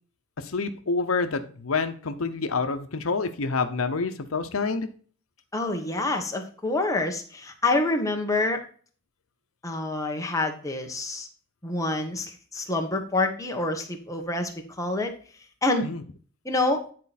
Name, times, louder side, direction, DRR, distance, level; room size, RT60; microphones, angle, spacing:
voice 1, 0.4-4.9 15.8-16.0, left 4 dB, 90° left, 9 dB, 0.8 m, -27 dB
voice 2, 5.5-8.6 9.6-11.3 11.6-14.5 14.8-15.1 15.6-15.9 16.4-16.8, left 2 dB, 15° left, 3 dB, 1.3 m, -27 dB
9.7 x 4.5 x 4.2 m, 0.43 s
head